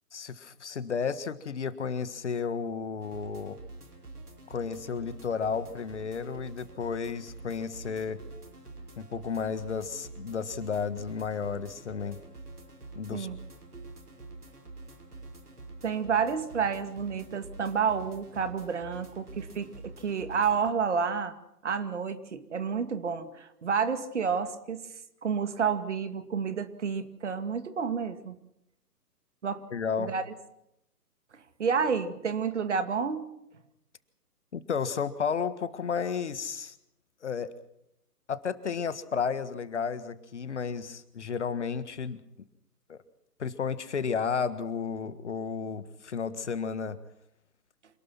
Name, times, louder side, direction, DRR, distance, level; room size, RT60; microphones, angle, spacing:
voice 1, 0.1-3.6 4.5-8.2 9.0-12.2 12.9-13.3 29.7-30.1 34.5-36.7 37.2-37.5 38.3-42.2 42.9-43.0 43.4-47.0, left 6 dB, 45° left, 14 dB, 1.7 m, -32 dB
sound 1, 3.0-20.7, right 2 dB, 70° right, 5.3 m, -47 dB
voice 2, 15.8-21.3 21.6-24.9 25.2-28.3 29.4-29.6 30.0-30.2 31.6-33.3, right 6 dB, 45° right, 10 dB, 2.3 m, -30 dB
27.5 x 19.5 x 6.0 m, 0.80 s
figure-of-eight pair, 135°, 47 cm